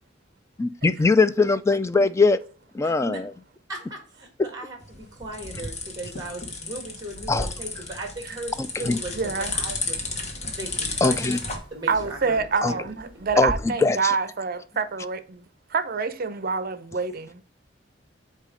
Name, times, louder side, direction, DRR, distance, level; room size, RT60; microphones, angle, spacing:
voice 1, 0.6-2.4 2.7-3.3 7.3-7.5 8.9-9.0 11.0-11.4 12.6-12.7 13.4-13.5 13.8-14.1, left 3 dB, 15° left, 0.3 m, -20 dB
voice 2, 2.8-3.2 3.7-10.0 10.6-11.3 11.7-12.4 12.6-12.9, right 2 dB, 20° right, 1.5 m, -37 dB
sound 1, 4.8-11.6, left 3 dB, 35° left, 1.2 m, -33 dB
sound 2, 7.1-13.5, right 1 dB, 5° right, 1.7 m, -42 dB
voice 3, 9.2-9.5 11.9-15.4 15.7-17.4, right 5 dB, 50° right, 0.6 m, -27 dB
8.2 x 2.8 x 5.0 m
head